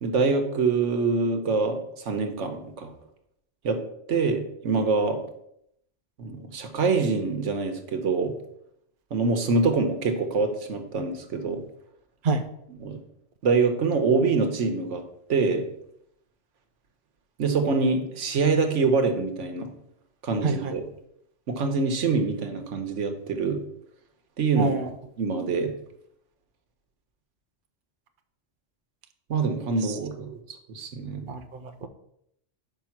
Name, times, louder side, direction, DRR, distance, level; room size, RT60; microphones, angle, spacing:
voice 1, 0.0-2.9 3.6-3.8 4.1-5.2 6.2-8.3 9.1-11.6 12.8-13.0 13.4-15.0 15.3-15.7 17.4-19.7 20.2-20.8 21.5-23.6 24.4-24.8 25.2-25.7 29.3-30.4 30.7-31.3, right 4 dB, 85° right, 5 dB, 1.3 m, -25 dB
voice 2, 24.5-24.9 29.8-30.0 31.3-31.9, right 4 dB, 50° right, 6 dB, 0.8 m, -27 dB
6.0 x 5.1 x 5.9 m, 0.74 s
omnidirectional pair, 1.2 m